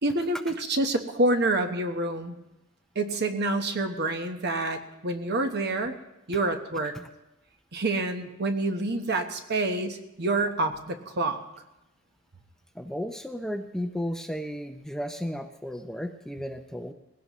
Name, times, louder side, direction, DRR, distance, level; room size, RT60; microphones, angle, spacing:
voice 1, 0.0-2.4 2.9-6.0 6.3-6.9 7.7-11.4, right 2 dB, 55° right, 6 dB, 1.1 m, -27 dB
voice 2, 12.7-16.9, equal, ahead, 6 dB, 0.6 m, -34 dB
20.0 x 16.5 x 3.1 m, 0.94 s
head